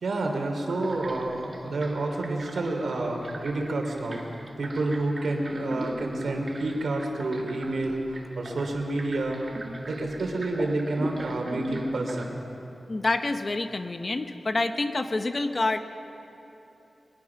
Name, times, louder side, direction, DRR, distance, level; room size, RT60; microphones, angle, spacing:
voice 1, 0.0-4.2 4.6-9.4 9.9-12.4, right 2 dB, 80° right, 2 dB, 3.2 m, -29 dB
sound 1, 0.7-12.3, right 2 dB, 40° right, 2.0 m, -41 dB
voice 2, 12.9-15.8, left 2 dB, 40° left, 8 dB, 1.0 m, -27 dB
22.5 x 20.5 x 6.0 m, 3.0 s
wide cardioid pair, 120°, 0 cm